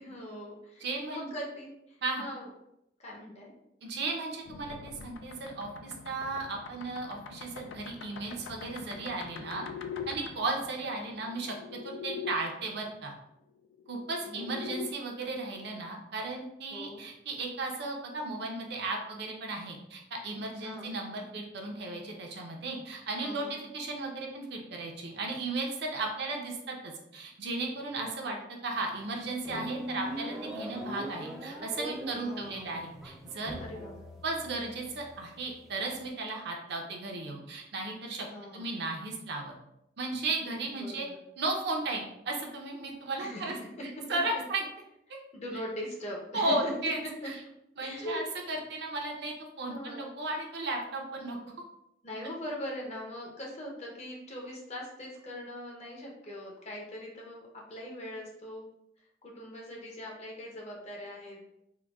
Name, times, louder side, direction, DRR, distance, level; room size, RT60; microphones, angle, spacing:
voice 1, 0.0-2.5 3.0-3.5 14.2-14.9 16.7-17.0 20.5-21.0 23.2-23.6 27.9-28.4 32.1-32.7 33.6-34.0 38.3-38.7 40.8-41.1 43.2-43.5 44.0-44.1 44.3-44.4 45.3-46.7 47.2-47.3 47.8-48.2 49.7-50.1 52.0-58.6 59.2-61.4, equal, 40° left, -1 dB, 0.7 m, -41 dB
voice 2, 0.8-1.3 2.0-2.3 3.8-9.6 10.1-11.5 11.8-13.1 13.9-28.4 28.6-33.6 34.2-38.3 38.5-39.5 40.0-41.1 41.4-43.5 44.1-44.7 45.1-45.2 46.3-47.0 47.2-47.3 47.8-51.4, right 2 dB, 65° right, 1 dB, 0.6 m, -35 dB
sound 1, 4.5-12.4 13.6-14.9, left 6 dB, 85° left, 0.3 m, -43 dB
sound 2, 28.9-36.1, right 1 dB, ahead, 0.3 m, -41 dB
3.8 x 2.2 x 2.3 m, 0.80 s
head